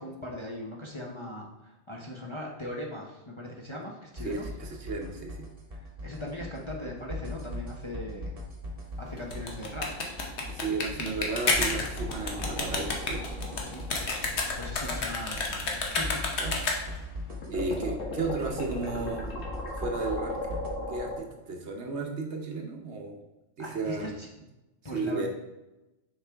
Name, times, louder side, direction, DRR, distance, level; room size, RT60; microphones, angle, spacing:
voice 1, 0.0-4.4 5.8-8.3 9.0-10.1 13.6-13.8 14.6-16.7 23.6-24.3 24.8-25.3, left 1 dB, 25° left, -3 dB, 0.8 m, -40 dB
sound 1, 4.2-20.7, left 1 dB, 30° right, 1.0 m, -40 dB
voice 2, 4.2-5.4 10.5-13.2 16.4-16.6 17.5-19.3 19.7-20.3 20.9-23.2 23.6-24.1 24.9-25.3, right 3 dB, 65° right, 2 dB, 1.2 m, -33 dB
sound 2, 9.2-17.1, left 3 dB, 65° left, 1.2 m, -30 dB
sound 3, 11.9-16.9 17.3-21.1, left 1 dB, 85° left, 1.7 m, -38 dB
6.7 x 4.7 x 3.4 m, 1.0 s
omnidirectional pair, 1.3 m